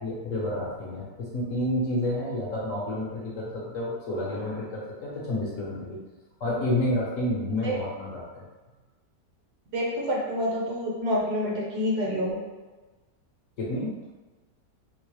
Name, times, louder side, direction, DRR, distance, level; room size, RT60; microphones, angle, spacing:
voice 1, 0.0-6.0 6.4-8.4 13.6-13.9, left 1 dB, 55° left, -6 dB, 1.0 m, -30 dB
voice 2, 9.7-12.4, equal, 65° right, -4 dB, 1.3 m, -28 dB
4.6 x 2.0 x 3.0 m, 1.2 s
omnidirectional pair, 1.9 m